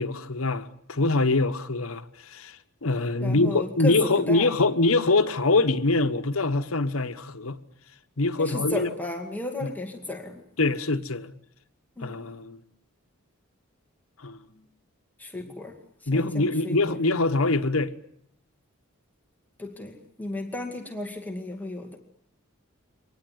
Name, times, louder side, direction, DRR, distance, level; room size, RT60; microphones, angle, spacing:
voice 1, 0.0-2.6 2.8-7.6 8.2-8.9 9.6-9.7 10.6-11.3 12.0-12.6 14.2-14.4 16.1-17.9, left 2 dB, 75° left, 1.2 m, -24 dB
voice 2, 3.2-4.5 8.4-10.4 12.0-12.2 15.2-15.8 16.1-17.0 19.6-22.0, left 2 dB, 10° left, 2.2 m, -34 dB
24.0 x 19.0 x 9.3 m
head